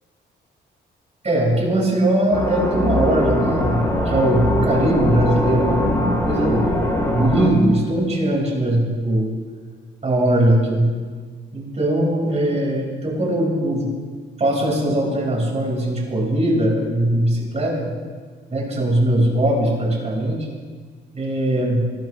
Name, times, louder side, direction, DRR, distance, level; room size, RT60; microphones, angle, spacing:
voice 1, 1.2-9.3 10.0-10.9 11.5-13.9 14.4-17.9 18.5-20.4 21.1-21.8, right 1 dB, 35° right, -1 dB, 5.2 m, -20 dB
sound 1, 2.3-7.5, left 1 dB, 15° left, 5.9 m, -21 dB
27.5 x 13.0 x 3.2 m, 1.6 s
cardioid pair, 90°, 20 cm